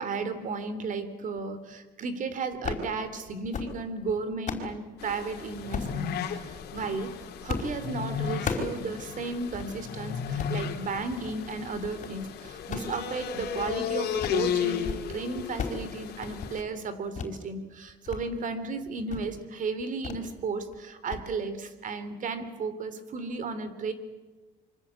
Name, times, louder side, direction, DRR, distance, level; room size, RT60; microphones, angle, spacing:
voice 1, 0.0-6.4 6.7-7.1 7.4-23.9, right 4 dB, 50° right, 12 dB, 3.3 m, -34 dB
sound 1, 2.5-2.9 3.3-3.8 4.2-4.7 5.7-6.0 6.6-6.9 7.5-7.8 8.0-8.8 9.1-9.2 9.5-9.7 10.2-10.6 11.1-11.4 11.7-12.2 12.5-13.8 14.0-14.5 14.7-15.1 15.3-15.8 16.1-16.5 17.1-17.3 17.7-18.2 18.6-18.7 19.1-19.3 20.0-20.3 20.6-20.8 21.1-21.2, left 5 dB, 45° left, 5.0 m, -35 dB
sound 2, 5.0-16.6, left 8 dB, 70° left, 3.5 m, -34 dB
27.0 x 24.5 x 8.4 m, 1.3 s
cardioid pair, 110°, 17 cm